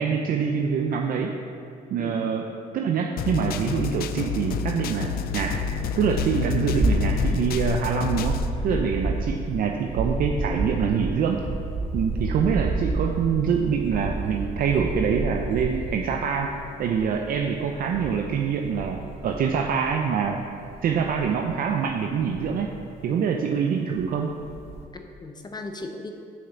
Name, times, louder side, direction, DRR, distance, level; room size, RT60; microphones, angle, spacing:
voice 1, 0.0-1.4 1.9-2.4 2.7-5.6 6.0-8.4 8.6-11.5 11.9-20.4 20.8-22.7 23.0-24.3, right 6 dB, 55° right, 3 dB, 0.6 m, -25 dB
sound 1, 3.2-8.5, left 8 dB, 65° left, 0.5 m, -29 dB
sound 2, 5.3-23.1 23.5-23.6 23.9-24.9, right 2 dB, 40° right, 1.2 m, -31 dB
voice 2, 24.9-26.1, left 3 dB, 25° left, 4 dB, 0.8 m, -36 dB
6.7 x 6.4 x 7.1 m, 2.6 s
cardioid pair, 110°, 17 cm